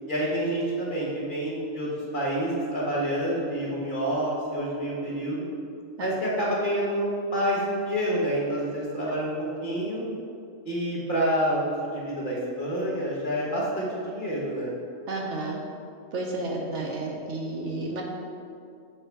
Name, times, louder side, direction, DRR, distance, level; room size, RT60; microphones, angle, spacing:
voice 1, 0.1-1.9 2.1-5.5 6.0-9.3 9.6-10.0 10.6-14.7, right 1 dB, 40° left, -5 dB, 1.4 m, -28 dB
voice 2, 15.1-15.6 16.1-18.0, right 2 dB, 65° right, -1 dB, 1.1 m, -31 dB
7.6 x 3.8 x 4.5 m, 2.4 s
omnidirectional pair, 1.4 m